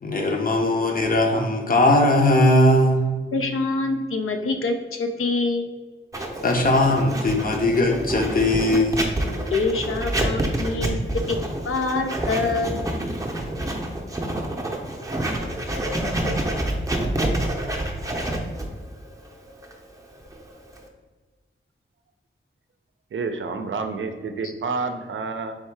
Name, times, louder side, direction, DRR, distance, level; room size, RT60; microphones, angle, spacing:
voice 1, 0.0-3.0 6.4-9.1, left 1 dB, 40° left, 2 dB, 0.7 m, -19 dB
voice 2, 3.3-5.7 9.5-11.4 11.6-12.8 24.4-24.5, left 3 dB, 85° left, 4 dB, 0.5 m, -25 dB
Writing, 6.1-20.9, right 1 dB, 15° right, 0.6 m, -28 dB
voice 3, 23.1-25.6, right 4 dB, 70° right, 7 dB, 0.5 m, -29 dB
3.5 x 2.7 x 4.6 m, 1.4 s
wide cardioid pair, 95°, 21 cm